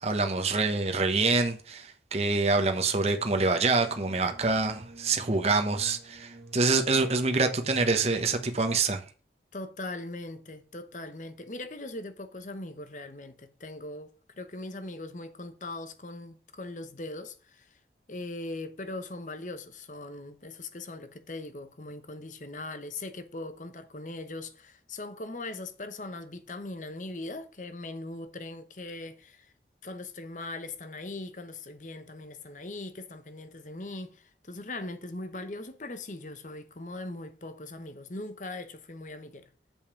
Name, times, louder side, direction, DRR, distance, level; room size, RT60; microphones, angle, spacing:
voice 1, 0.0-9.0, right 3 dB, 35° right, 1.1 m, -26 dB
sound 1, 2.7-8.7, right 1 dB, 70° right, 1.6 m, -48 dB
voice 2, 9.5-17.8 18.1-29.5 29.8-39.5, left 2 dB, 45° left, 1.0 m, -40 dB
7.2 x 5.4 x 5.8 m
head